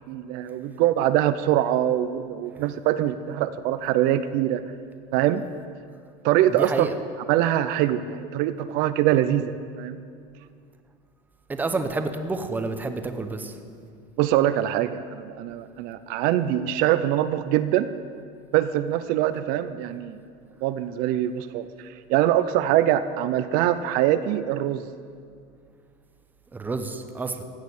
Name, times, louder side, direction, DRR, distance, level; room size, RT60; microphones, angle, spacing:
voice 1, 0.1-4.6 5.1-5.4 6.2-6.9 7.3-9.5 9.8-10.0 14.2-17.9 18.5-20.2 20.6-24.9, right 12 dB, 55° right, 12 dB, 0.6 m, -23 dB
voice 2, 6.5-6.9 11.5-13.6 26.5-27.4, right 3 dB, 10° right, 8 dB, 0.7 m, -29 dB
16.0 x 6.5 x 9.7 m, 2.2 s
cardioid pair, 155°, 19 cm